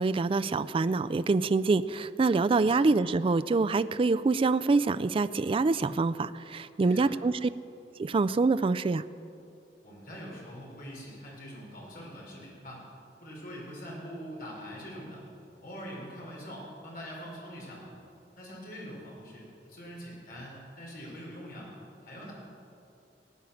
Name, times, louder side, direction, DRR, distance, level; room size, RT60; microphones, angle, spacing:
voice 1, 0.0-7.5 8.0-9.0, right 3 dB, 30° right, 14 dB, 0.3 m, -26 dB
voice 2, 2.6-2.9 6.8-7.1 9.8-12.8 13.2-15.2 15.6-17.9 18.4-21.7 22.0-22.3, equal, 55° left, -3 dB, 4.7 m, -43 dB
18.0 x 9.0 x 7.1 m, 2.7 s
head